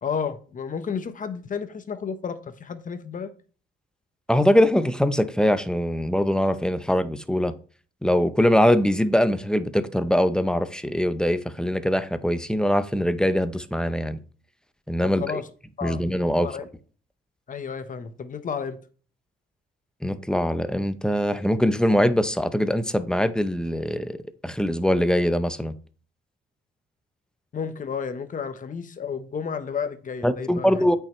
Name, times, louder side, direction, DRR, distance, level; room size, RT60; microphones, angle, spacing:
voice 1, 0.0-3.3 15.0-15.5 15.8-16.0 16.4-16.7 17.5-18.8 27.5-30.8, left 6 dB, 40° left, 1.0 m, -32 dB
voice 2, 4.3-7.5 8.0-14.2 14.9-15.4 15.8-16.5 20.0-24.2 24.4-25.7 30.2-31.0, equal, 5° left, 0.7 m, -22 dB
8.7 x 5.7 x 3.1 m
cardioid pair, 90°, 20 cm